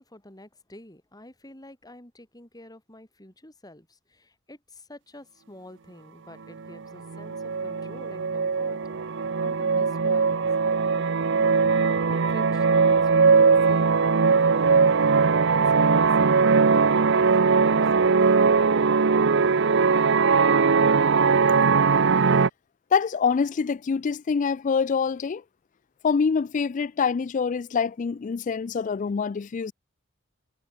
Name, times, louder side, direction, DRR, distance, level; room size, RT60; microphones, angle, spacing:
voice 1, 0.0-8.8 9.2-11.2 12.0-18.2, left 1 dB, 20° left, 3.9 m, -48 dB
sound 1, 6.7-6.8 7.1-22.5, right 5 dB, 60° right, 0.7 m, -20 dB
voice 2, 22.9-25.4 26.0-29.7, left 5 dB, 40° left, 0.3 m, -25 dB
head